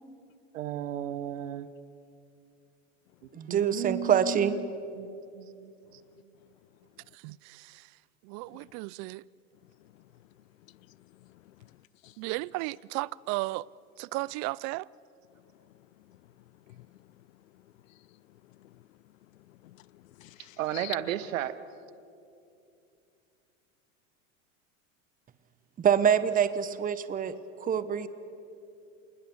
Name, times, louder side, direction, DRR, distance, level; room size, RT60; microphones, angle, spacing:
voice 1, 0.5-1.7 3.5-4.7 5.0-5.7 20.6-21.6, right 12 dB, 75° right, 1.2 m, -34 dB
voice 2, 3.3-4.5 25.8-27.3 27.6-28.1, right 8 dB, 20° right, 1.0 m, -25 dB
voice 3, 7.2-7.7 8.3-9.2 12.2-13.6 14.0-14.9, right 22 dB, 45° right, 0.5 m, -34 dB
voice 4, 10.7-12.1 16.1-16.2 16.7-17.0 17.9-18.0 18.3-18.8 19.5-21.0, left 16 dB, 80° left, 0.7 m, -48 dB
27.0 x 20.0 x 7.1 m
hypercardioid pair, 105°, 39 cm